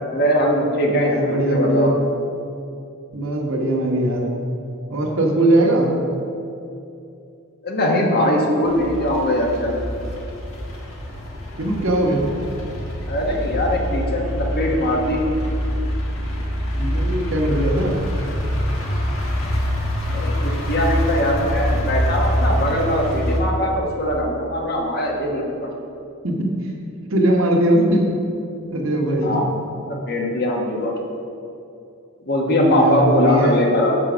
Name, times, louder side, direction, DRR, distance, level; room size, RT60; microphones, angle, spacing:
voice 1, 0.0-1.9 7.6-9.8 13.1-15.3 20.1-25.7 29.2-29.4 29.9-30.9 32.3-33.9, equal, 50° left, 0 dB, 1.3 m, -21 dB
voice 2, 0.8-1.9 3.1-4.3 4.9-5.9 11.6-12.3 16.8-18.0 26.2-26.7 27.1-28.1 28.7-29.4 32.5-33.6, right 1 dB, 70° right, -1 dB, 1.4 m, -20 dB
sound 1, 8.6-23.4, equal, 70° left, 1.6 m, -25 dB
7.6 x 5.6 x 6.2 m, 2.6 s
head